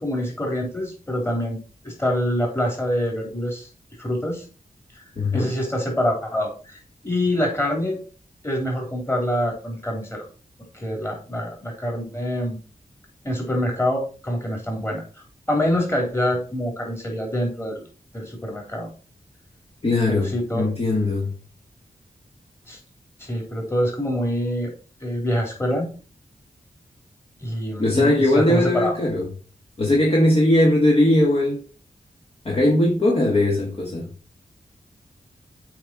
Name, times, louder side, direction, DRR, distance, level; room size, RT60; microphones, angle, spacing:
voice 1, 0.0-3.7 4.0-4.4 4.9-5.0 5.3-6.8 7.0-8.0 8.4-10.2 10.7-12.6 13.2-15.0 15.5-17.8 18.1-18.9 20.1-20.7 22.7-22.8 23.2-24.7 25.0-25.9 27.4-29.0, equal, 15° left, 3.2 m, -25 dB
voice 2, 5.2-5.5 19.8-21.3 27.8-29.3 29.8-31.6 32.4-34.1, left 1 dB, 40° left, 1.6 m, -19 dB
7.7 x 5.0 x 4.3 m
wide cardioid pair, 120°, 15 cm